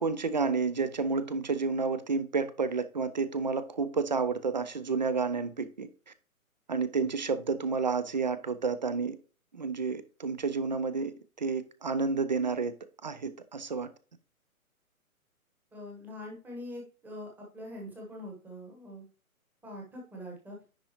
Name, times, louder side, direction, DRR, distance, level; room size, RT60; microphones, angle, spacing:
voice 1, 0.0-5.9 6.7-9.2 9.5-12.7 13.0-13.9, right 4 dB, 35° right, 0.4 m, -30 dB
voice 2, 15.7-19.0 19.6-20.6, left 1 dB, 5° right, 1.0 m, -43 dB
10.0 x 3.7 x 2.9 m
hypercardioid pair, 145°, 43 cm